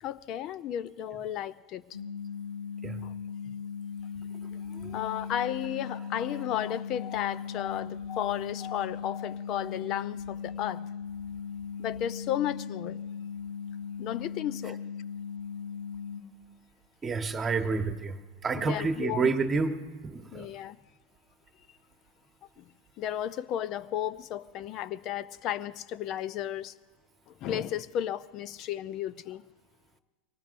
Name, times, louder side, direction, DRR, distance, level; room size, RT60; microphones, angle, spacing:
voice 1, 0.0-1.8 3.0-3.1 3.5-3.6 4.9-10.9 11.8-13.0 14.0-14.8 18.5-19.4 20.3-20.8 22.6-22.7 23.0-26.7 27.3-29.4, left 11 dB, 45° left, 0.6 m, -33 dB
sound 1, 1.9-16.2, left 6 dB, 85° left, 1.2 m, -38 dB
voice 2, 4.7-5.2 6.3-6.4 7.1-7.4 7.7-7.9 8.2-8.4 17.0-18.2 18.4-19.8 20.0-20.5, right 4 dB, 25° right, 1.2 m, -30 dB
23.0 x 19.0 x 2.6 m
hypercardioid pair, 90°, 0 cm